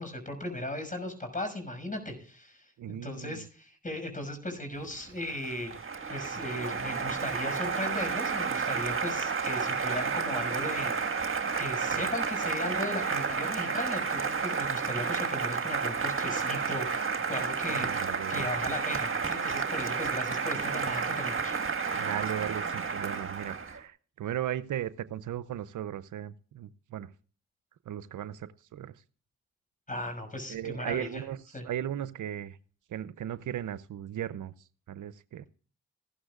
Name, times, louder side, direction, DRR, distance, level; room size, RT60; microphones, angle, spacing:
voice 1, 0.0-5.7 6.1-21.6 29.9-31.2 31.5-31.7, left 1 dB, 25° left, 6.2 m, -37 dB
voice 2, 2.8-3.4 17.7-18.5 21.9-27.1 27.9-28.9 30.5-31.4 31.6-32.6 32.9-34.5 34.9-35.5, right 11 dB, 65° right, 0.7 m, -36 dB
Applause, 4.9-23.8, right 5 dB, 40° right, 1.8 m, -31 dB
15.5 x 12.5 x 2.4 m
supercardioid pair, 50°, 32 cm